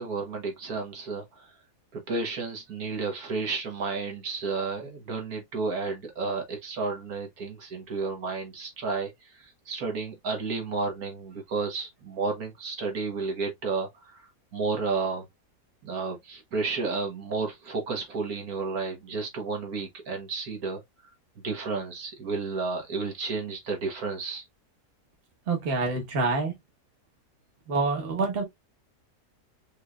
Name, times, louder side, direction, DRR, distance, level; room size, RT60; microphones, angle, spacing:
voice 1, 0.0-1.5 1.9-14.3 14.5-15.3 15.8-20.8 21.4-24.4, right 4 dB, 65° right, 1.7 m, -32 dB
voice 2, 25.5-26.5 27.7-28.4, right 3 dB, 40° right, 1.4 m, -26 dB
5.3 x 3.1 x 2.3 m
omnidirectional pair, 1.7 m